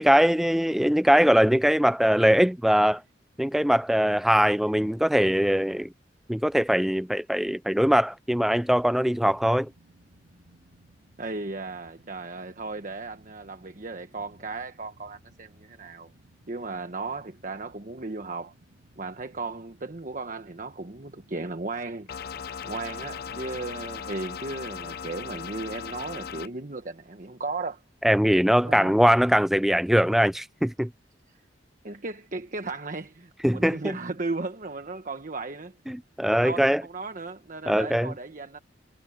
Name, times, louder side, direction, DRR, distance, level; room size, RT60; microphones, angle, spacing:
voice 1, 0.0-3.0 3.4-5.9 6.3-9.7 28.0-30.9 33.4-33.9 35.9-36.8 37.7-38.1, equal, ahead, 0.3 m, -21 dB
sound 1, 9.3-26.3, right 1 dB, 90° right, 3.2 m, -59 dB
voice 2, 11.2-16.1 16.5-18.5 19.0-22.1 22.6-27.8 28.6-29.0 31.8-35.7 36.4-38.6, right 3 dB, 45° right, 1.2 m, -35 dB
sound 2, 22.1-26.5, left 7 dB, 60° left, 0.6 m, -37 dB
head